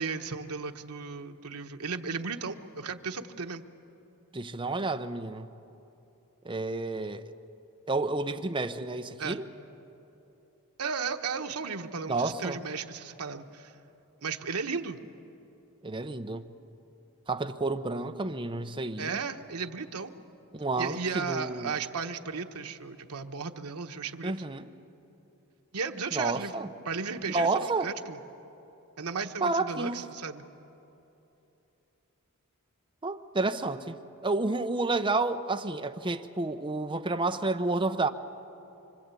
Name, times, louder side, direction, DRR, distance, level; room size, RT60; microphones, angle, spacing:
voice 1, 0.0-3.6 9.2-9.4 10.8-13.7 14.2-15.0 19.0-20.1 20.8-24.3 25.7-26.5 26.8-28.2 29.0-30.5, right 5 dB, 90° right, 1.2 m, -35 dB
voice 2, 4.3-5.5 6.4-7.3 7.9-9.5 12.1-12.6 15.8-16.5 17.3-19.2 20.5-21.7 24.2-24.7 26.1-26.7 27.3-27.9 29.4-30.0 33.0-33.9 34.2-38.1, right 3 dB, 20° right, 0.8 m, -30 dB
25.5 x 25.0 x 8.4 m
head